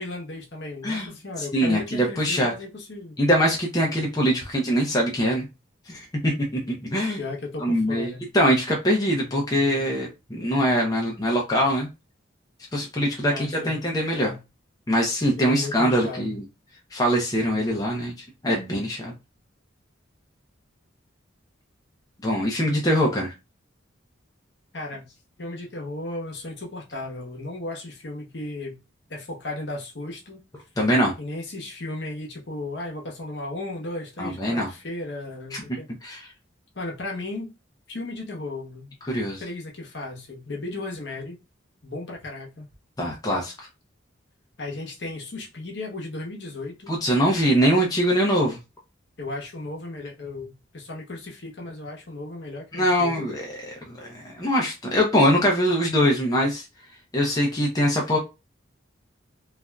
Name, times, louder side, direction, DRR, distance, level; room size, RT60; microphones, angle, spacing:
voice 1, 0.0-3.1 7.2-8.3 13.2-13.8 14.1-14.4 15.4-16.4 24.7-25.1 25.4-28.8 29.1-30.4 31.2-35.9 36.7-37.5 37.9-38.9 39.4-41.4 41.8-42.7 44.6-46.9 49.2-53.3, left 2 dB, 55° left, 0.9 m, -35 dB
voice 2, 1.4-2.5 3.2-5.5 5.9-7.2 7.6-11.9 12.7-14.3 14.9-16.4 16.9-19.1 22.2-23.3 30.8-31.1 34.2-34.7 35.5-35.6 36.0-36.3 39.0-39.4 43.0-43.7 46.9-48.6 52.7-56.6 57.1-58.2, equal, 20° left, 0.6 m, -23 dB
3.3 x 2.4 x 2.2 m
head